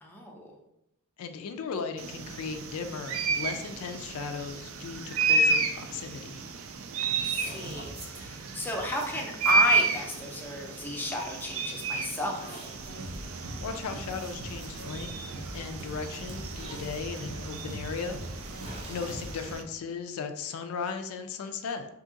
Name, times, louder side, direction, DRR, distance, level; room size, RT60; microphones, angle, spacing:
voice 1, 0.0-0.5 7.0-12.7, left 1 dB, 10° left, -1 dB, 0.5 m, -33 dB
voice 2, 1.2-6.4 13.6-15.1 15.5-18.2 18.5-21.9, left 5 dB, 75° left, 7 dB, 0.3 m, -37 dB
sound 1, 2.0-19.6, right 3 dB, 65° right, 0.4 m, -32 dB
sound 2, 7.2-19.6, right 1 dB, 25° right, 0.7 m, -50 dB
sound 3, 12.8-19.6, right 1 dB, 85° right, 0.8 m, -41 dB
2.7 x 2.5 x 3.8 m, 0.82 s
head